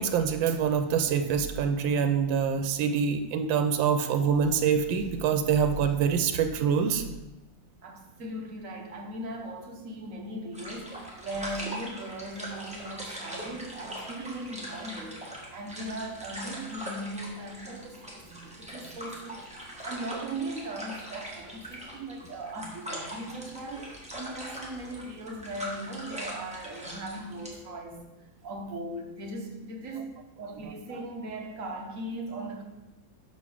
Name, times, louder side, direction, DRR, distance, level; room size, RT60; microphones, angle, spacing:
voice 1, 0.0-7.0, right 7 dB, 85° right, 7 dB, 1.4 m, -25 dB
voice 2, 7.8-28.0 28.4-32.6, right 1 dB, 50° right, 2 dB, 1.2 m, -39 dB
sound 1, 10.5-27.5, equal, 5° right, 1.3 m, -41 dB
6.1 x 5.4 x 6.2 m, 1.0 s
omnidirectional pair, 2.0 m